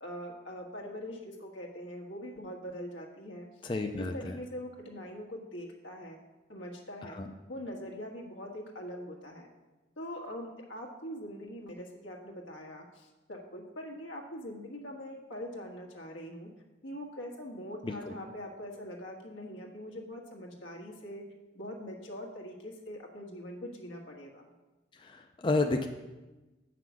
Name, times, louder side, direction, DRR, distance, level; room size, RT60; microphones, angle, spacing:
voice 1, 0.0-3.5 4.0-6.2 6.5-7.2 7.5-9.5 10.0-16.5 16.8-21.2 21.5-24.4, equal, 90° left, 0 dB, 1.5 m, -43 dB
voice 2, 3.6-4.3 7.0-7.3 17.8-18.1 24.9-25.9, left 2 dB, 25° left, 5 dB, 0.4 m, -31 dB
8.1 x 5.8 x 6.2 m, 1.1 s
head